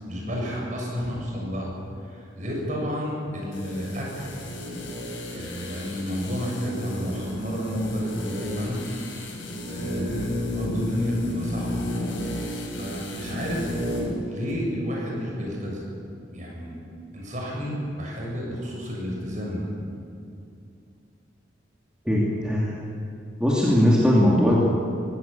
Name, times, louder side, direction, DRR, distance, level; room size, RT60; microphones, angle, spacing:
voice 1, 0.0-1.8 2.1-4.3 5.3-8.8 9.7-11.8 12.7-13.7 14.3-15.9 16.3-16.8 17.1-19.7, equal, 40° right, -2 dB, 7.3 m, -31 dB
sound 1, 3.5-14.2 14.5-14.6, left 1 dB, 90° left, 5.6 m, -32 dB
voice 2, 22.1-22.7 23.4-24.6, equal, 5° right, -6 dB, 2.7 m, -19 dB
23.0 x 17.0 x 7.3 m, 2.6 s
head